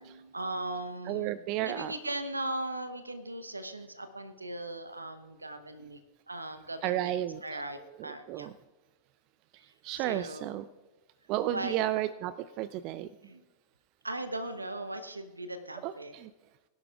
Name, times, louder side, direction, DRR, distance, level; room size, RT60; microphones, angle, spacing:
voice 1, 0.1-6.0 6.3-7.1 7.4-8.5 10.0-10.5 11.5-11.8 13.3-13.4 14.0-16.1, right 1 dB, 80° right, 10 dB, 0.9 m, -38 dB
voice 2, 1.1-1.9 6.8-7.6 7.9-8.5 9.8-10.7 11.3-13.1 15.8-16.3, right 13 dB, 40° right, 15 dB, 0.4 m, -33 dB
22.5 x 10.5 x 2.4 m, 1.2 s
figure-of-eight pair, 90°, 0 cm